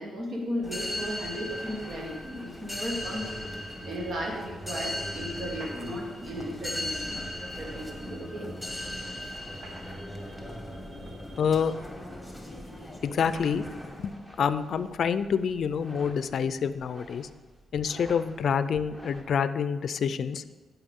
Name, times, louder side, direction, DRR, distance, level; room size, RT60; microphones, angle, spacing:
voice 1, 0.0-7.2 7.5-8.5 9.5-9.6 10.0-11.4, equal, 60° right, -1 dB, 1.8 m, -36 dB
sound 1, 0.6-14.1, left 1 dB, 5° left, 1.7 m, -38 dB
sound 2, 0.6-19.2, equal, 15° right, 1.6 m, -50 dB
sound 3, 5.5-6.3 8.0-8.1 9.3-10.3 11.1-11.2 12.2-12.3 13.3-13.8, right 2 dB, 75° right, 1.6 m, -48 dB
voice 2, 11.4-11.7 13.0-13.7 14.0-17.3 17.7-20.4, left 7 dB, 65° left, 13 dB, 0.5 m, -27 dB
15.5 x 5.7 x 3.7 m, 1.3 s
cardioid pair, 85°, 0 cm